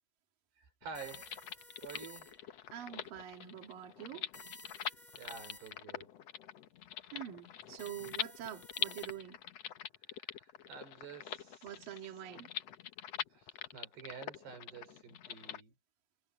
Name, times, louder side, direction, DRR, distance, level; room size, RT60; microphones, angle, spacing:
voice 1, 0.6-1.4 1.8-2.4 4.8-6.1 10.1-11.8 12.3-12.5 13.3-15.7, right 6 dB, 80° right, 7.1 m, -50 dB
sound 1, 0.8-15.6, left 10 dB, 85° left, 1.4 m, -44 dB
sound 2, 0.9-2.6 4.3-6.0 7.8-9.5, left 1 dB, 10° left, 5.3 m, -54 dB
voice 2, 2.7-4.3 7.1-9.4 11.6-12.5, right 11 dB, 60° right, 3.5 m, -45 dB
omnidirectional pair, 4.7 m